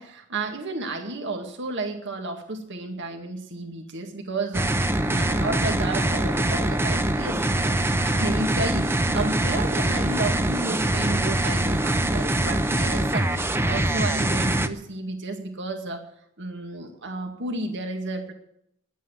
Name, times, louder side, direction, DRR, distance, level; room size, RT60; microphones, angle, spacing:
voice 1, 0.0-16.0 16.4-18.3, right 2 dB, 60° right, 4 dB, 2.0 m, -32 dB
sound 1, 4.5-14.7, right 1 dB, 10° right, 0.8 m, -23 dB
11.0 x 9.2 x 9.5 m, 0.73 s
head